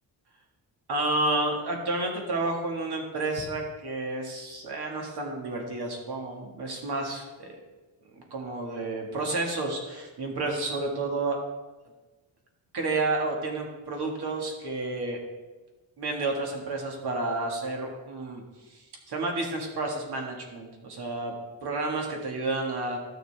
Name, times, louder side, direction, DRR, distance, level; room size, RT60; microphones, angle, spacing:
voice 1, 0.9-7.5 8.3-11.4 12.7-15.2 16.0-18.4 19.1-21.3 21.6-23.0, right 2 dB, 55° right, 1 dB, 1.9 m, -30 dB
12.5 x 6.5 x 3.4 m, 1.2 s
wide cardioid pair, 160°, 45 cm